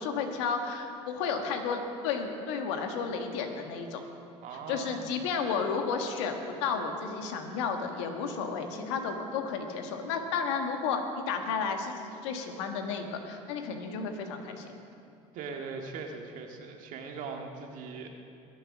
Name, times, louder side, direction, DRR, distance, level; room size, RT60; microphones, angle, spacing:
voice 1, 0.0-4.0 4.7-14.7, left 5 dB, 90° left, 5 dB, 1.5 m, -32 dB
voice 2, 4.4-5.1 15.3-18.2, right 4 dB, 65° right, 3 dB, 1.9 m, -40 dB
21.5 x 7.8 x 6.0 m, 2.6 s
supercardioid pair, 85°, 15 cm